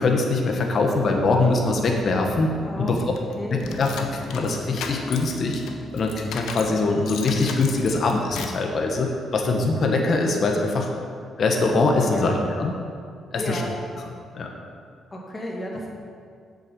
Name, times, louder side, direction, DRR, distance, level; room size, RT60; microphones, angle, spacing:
voice 1, 0.0-2.5 2.8-3.0 3.5-5.6 5.9-10.9 11.4-12.7 13.3-13.6 14.3-14.5, left 3 dB, 50° left, 2 dB, 1.2 m, -23 dB
sound 1, 1.0-8.4, equal, 5° left, 0.8 m, -38 dB
voice 2, 2.6-3.7 12.1-12.4 13.4-13.7 15.1-15.9, left 1 dB, 25° left, -1 dB, 2.0 m, -32 dB
sound 2, 3.2-6.7 7.1-8.7, left 6 dB, 80° left, 0.8 m, -36 dB
7.7 x 6.6 x 6.9 m, 2.2 s
cardioid pair, 90°, 0 cm